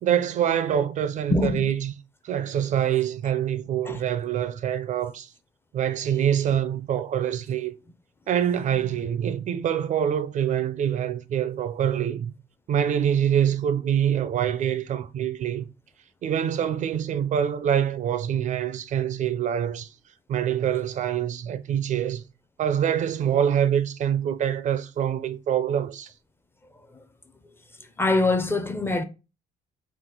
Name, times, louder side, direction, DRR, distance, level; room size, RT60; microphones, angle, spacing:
voice 1, 0.0-1.9 2.2-5.3 5.7-7.7 8.3-12.3 12.7-15.7 16.2-19.9 20.3-22.2 22.6-26.1, right 9 dB, 45° right, 0.4 m, -25 dB
voice 2, 1.3-1.7 3.8-4.0 28.0-29.0, left 2 dB, 15° left, 0.4 m, -23 dB
3.8 x 2.5 x 3.7 m
cardioid pair, 110°, 17 cm